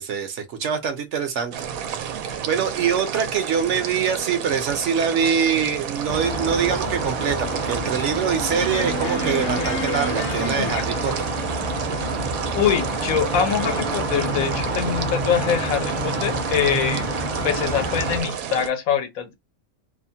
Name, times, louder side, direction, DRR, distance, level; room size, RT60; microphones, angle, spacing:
voice 1, 0.0-1.5 1.9-11.2, right 7 dB, 65° right, 0.9 m, -24 dB
sound 1, 1.5-18.7, right 8 dB, 85° right, 1.0 m, -31 dB
sound 2, 6.1-18.2, right 1 dB, 40° right, 0.6 m, -28 dB
sound 3, 8.5-11.5 13.5-14.3, left 1 dB, 60° left, 1.0 m, -31 dB
voice 2, 12.5-17.1 17.4-19.3, left 8 dB, 80° left, 1.2 m, -24 dB
2.8 x 2.1 x 2.6 m
omnidirectional pair, 1.4 m